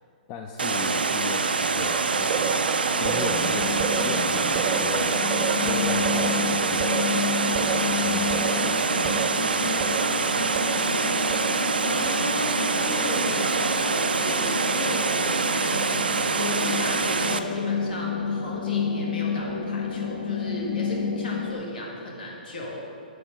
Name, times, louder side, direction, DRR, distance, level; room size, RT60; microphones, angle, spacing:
voice 1, 0.3-7.0 7.5-10.8, left 6 dB, 35° left, 3 dB, 0.4 m, -37 dB
Water, 0.6-17.4, right 4 dB, 85° right, 0.4 m, -25 dB
sound 1, 1.9-16.7, right 6 dB, 35° right, 0.6 m, -34 dB
sound 2, 3.0-21.5, left 5 dB, 85° left, 0.6 m, -31 dB
voice 2, 11.8-22.8, left 1 dB, 70° left, -2 dB, 1.7 m, -35 dB
7.8 x 3.7 x 6.2 m, 2.6 s
hypercardioid pair, 125°, 5 cm